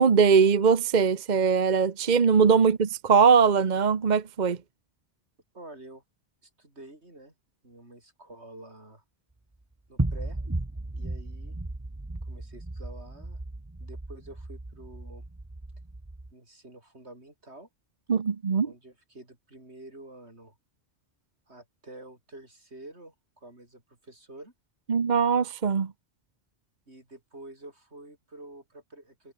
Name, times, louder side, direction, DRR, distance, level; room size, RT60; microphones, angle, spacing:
voice 1, 0.0-4.6 18.1-18.7 24.9-25.9, right 6 dB, 45° right, 1.1 m, -21 dB
voice 2, 5.5-6.0 6.4-7.3 7.6-9.0 9.9-10.4 11.0-11.6 12.2-13.4 13.8-15.3 16.3-17.7 18.6-20.6 21.5-24.5 26.9-29.3, right 1 dB, 90° right, 6.4 m, -48 dB
sound 1, 10.0-16.3, right 2 dB, 15° right, 1.2 m, -35 dB
omnidirectional pair, 1.1 m